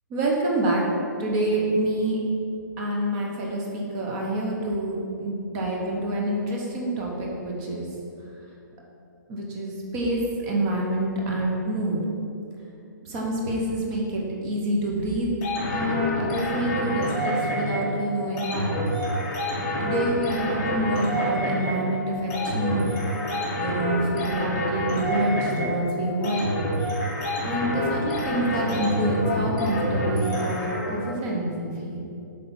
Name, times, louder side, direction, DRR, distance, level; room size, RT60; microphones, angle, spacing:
voice 1, 0.1-0.8 1.2-2.2 2.8-7.9 9.3-12.0 13.0-15.3 15.7-18.7 19.8-22.9 23.5-26.6 27.4-32.0, right 1 dB, 15° right, -2 dB, 0.8 m, -27 dB
sound 1, 15.4-31.1, equal, 25° left, 1.7 m, -27 dB
8.0 x 3.3 x 5.9 m, 2.7 s
hypercardioid pair, 175°, 10 cm